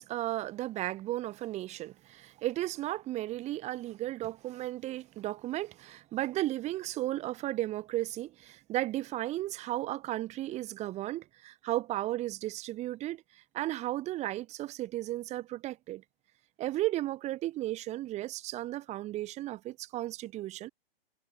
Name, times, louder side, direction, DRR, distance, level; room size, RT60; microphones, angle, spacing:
voice 1, 0.0-16.0 16.6-20.7, right 15 dB, 20° right, 3.2 m, -34 dB
figure-of-eight pair, 125°, 30 cm